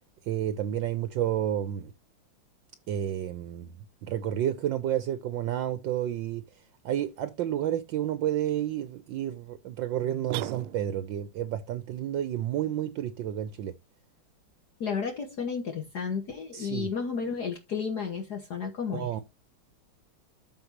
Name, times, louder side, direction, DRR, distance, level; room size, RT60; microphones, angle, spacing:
voice 1, 0.3-1.9 2.9-3.7 4.0-6.4 6.8-13.7 16.5-16.9 18.9-19.2, right 11 dB, 70° right, 1.4 m, -30 dB
sound 1, 10.3-11.2, right 15 dB, 85° right, 1.5 m, -36 dB
voice 2, 14.8-19.1, left 6 dB, 55° left, 1.7 m, -32 dB
13.0 x 4.8 x 2.9 m
omnidirectional pair, 2.3 m